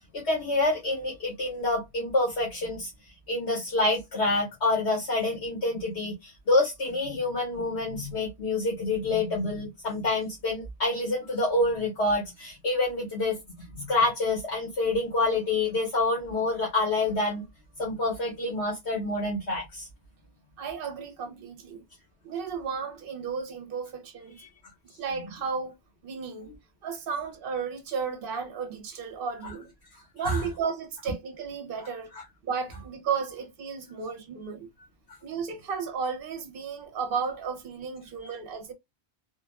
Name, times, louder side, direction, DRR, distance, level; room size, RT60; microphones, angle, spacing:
voice 1, 0.1-2.9 3.3-17.4 17.8-19.9 29.4-29.5 30.2-30.5, left 2 dB, 85° left, 1.6 m, -27 dB
voice 2, 20.6-21.8 22.2-24.4 25.0-25.7 26.0-26.5 26.8-29.7 30.1-32.1 32.4-34.7 35.2-38.7, right 6 dB, 60° right, 0.9 m, -33 dB
3.6 x 2.2 x 2.3 m
omnidirectional pair, 1.1 m